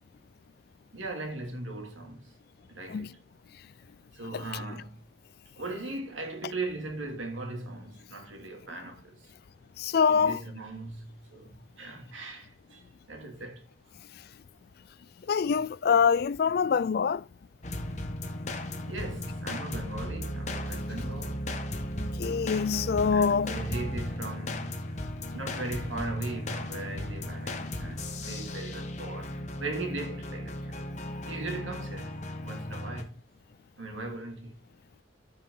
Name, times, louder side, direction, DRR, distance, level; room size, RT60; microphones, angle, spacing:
voice 1, 0.9-2.3 2.7-3.2 4.1-5.0 5.6-9.3 10.1-13.6 18.9-21.5 23.1-24.8 25.3-30.9 31.3-33.2 33.8-34.5, right 2 dB, 85° right, 2.6 m, -39 dB
voice 2, 9.8-10.4 15.3-17.2 22.0-23.6, left 6 dB, 55° left, 0.3 m, -25 dB
sound 1, 17.6-33.0, left 1 dB, 35° left, 1.2 m, -36 dB
13.5 x 4.7 x 3.8 m
head